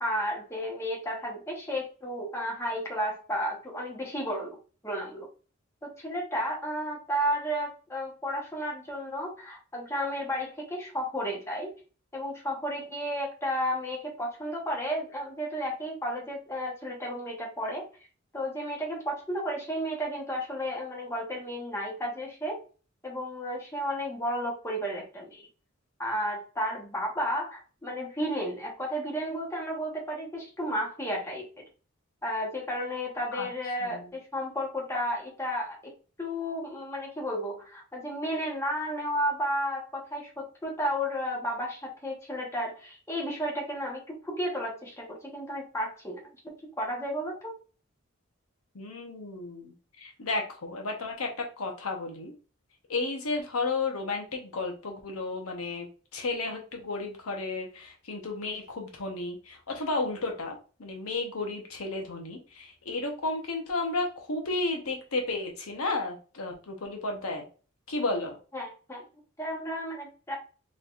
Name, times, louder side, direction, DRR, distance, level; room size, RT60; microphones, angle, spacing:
voice 1, 0.0-4.6 4.8-5.3 5.8-11.7 12.1-17.8 18.3-22.6 23.0-25.5 26.0-31.5 32.2-35.8 36.2-46.2 46.8-47.6 68.5-69.0 69.4-70.4, equal, 15° left, -1 dB, 1.1 m, -33 dB
voice 2, 48.7-52.3 52.9-55.9 56.1-67.4 67.9-68.4, left 3 dB, 85° left, 2 dB, 0.9 m, -33 dB
4.2 x 3.2 x 2.4 m, 0.36 s
head